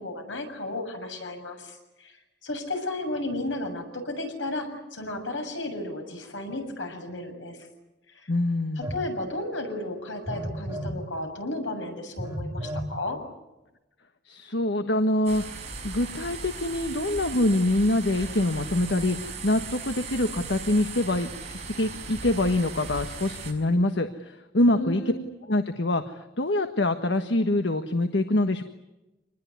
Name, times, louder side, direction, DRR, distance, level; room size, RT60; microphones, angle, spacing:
voice 1, 0.0-7.7 8.1-8.3 8.8-13.2 24.6-25.2, left 2 dB, 85° left, 5 dB, 7.1 m, -34 dB
voice 2, 8.3-8.9 14.2-15.4 15.8-25.0 25.5-28.6, left 1 dB, 70° left, 8 dB, 1.4 m, -25 dB
Telephone, 8.8-9.0 10.3-11.0 12.2-12.9, equal, 15° right, 2.7 m, -32 dB
sound 1, 15.3-23.5, right 4 dB, 35° right, 6.4 m, -38 dB
27.0 x 20.5 x 9.6 m, 1.0 s
head